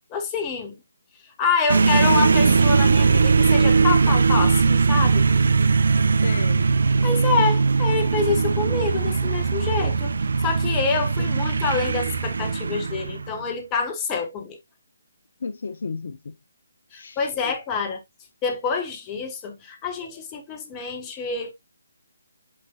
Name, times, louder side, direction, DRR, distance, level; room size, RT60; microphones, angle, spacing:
voice 1, 0.1-0.7 1.4-5.3 7.0-10.1 10.4-14.6 16.9-18.0 18.4-21.5, left 5 dB, 20° left, 1.4 m, -26 dB
sound 1, 1.7-13.4, right 4 dB, 60° right, 0.5 m, -20 dB
voice 2, 6.2-6.7 15.4-16.3 16.9-17.5, left 4 dB, 50° left, 0.7 m, -34 dB
8.7 x 5.4 x 2.4 m
figure-of-eight pair, 145°, 0 cm